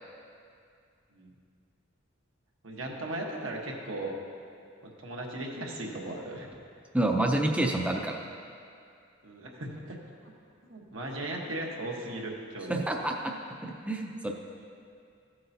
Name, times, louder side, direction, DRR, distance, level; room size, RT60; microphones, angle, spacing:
voice 1, 2.6-4.2 4.8-6.5 9.2-10.0 10.2-10.3 10.7-12.9, right 1 dB, 80° right, -1 dB, 1.3 m, -37 dB
voice 2, 6.9-8.2 12.7-13.3 13.6-14.3, right 1 dB, 5° right, 1 dB, 0.5 m, -28 dB
14.5 x 7.8 x 2.8 m, 2.4 s
head